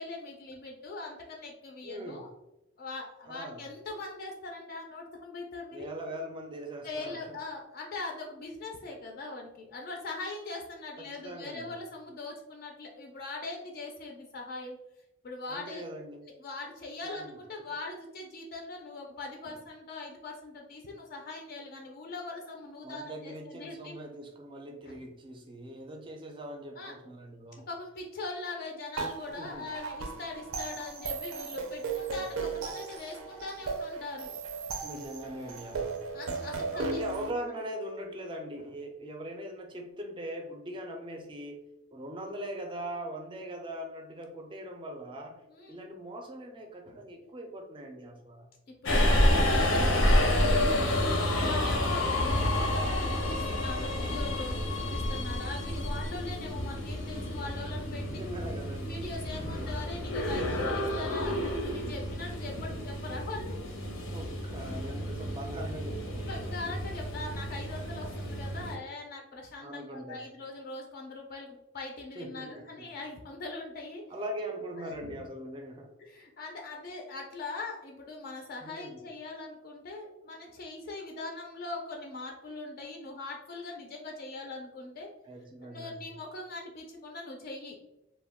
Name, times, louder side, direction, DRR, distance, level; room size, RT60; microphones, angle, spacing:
voice 1, 0.0-2.3 2.8-5.9 6.8-14.8 15.2-15.9 16.2-23.9 24.9-25.0 26.8-26.9 27.7-34.3 36.1-37.0 45.5-45.8 48.8-58.1 58.9-63.6 66.2-74.0 74.8-75.2 76.0-85.1 85.6-87.7, left 3 dB, 50° left, 1 dB, 0.4 m, -41 dB
voice 2, 1.8-2.2 3.3-3.7 5.7-7.4 11.0-11.8 15.5-16.3 17.0-17.4 19.4-19.6 22.8-27.7 29.4-29.7 34.8-36.0 36.7-41.6 41.9-45.4 45.7-48.5 52.0-52.3 58.0-58.9 59.3-59.8 62.5-62.8 64.1-66.6 69.6-70.2 72.1-72.9 74.1-75.9 78.6-79.1 85.3-86.1, right 1 dB, 25° right, 3 dB, 0.4 m, -41 dB
sound 1, 29.0-37.3, right 4 dB, 85° right, 0.4 m, -36 dB
Subway metro underground, 48.9-68.8, left 1 dB, 85° left, 0.6 m, -29 dB
2.2 x 2.1 x 3.4 m, 0.90 s
head